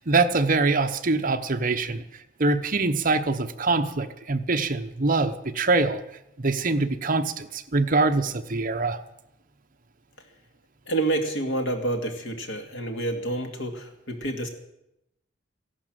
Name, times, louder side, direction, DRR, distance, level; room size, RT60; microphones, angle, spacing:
voice 1, 0.0-2.0 2.4-6.0 6.4-9.0, right 3 dB, 45° right, 8 dB, 1.0 m, -24 dB
voice 2, 10.9-14.5, right 2 dB, 80° left, 4 dB, 2.4 m, -28 dB
15.5 x 11.5 x 7.6 m, 0.85 s
head